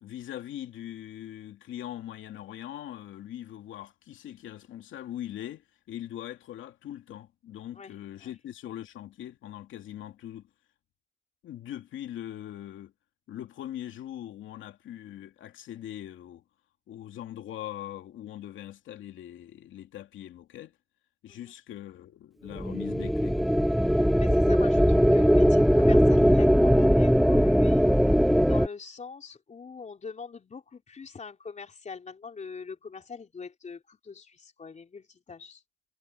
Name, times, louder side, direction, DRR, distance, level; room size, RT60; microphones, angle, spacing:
voice 1, 0.0-10.5 11.4-12.9 13.3-16.4 16.9-20.7 21.2-23.4, left 12 dB, 75° left, 2.5 m, -41 dB
sound 1, 22.6-28.7, equal, ahead, 1.1 m, -20 dB
voice 2, 23.8-27.9 28.5-35.6, left 5 dB, 35° left, 3.4 m, -43 dB
cardioid pair, 90°, 20 cm